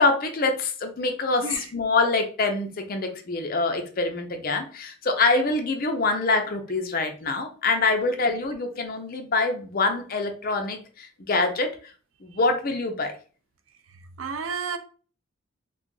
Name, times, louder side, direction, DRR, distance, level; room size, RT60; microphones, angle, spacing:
voice 1, 0.0-11.8 12.2-13.1, left 3 dB, 45° left, 0.5 m, -25 dB
voice 2, 14.2-14.8, right 5 dB, 70° right, 0.4 m, -31 dB
2.7 x 2.4 x 3.8 m
head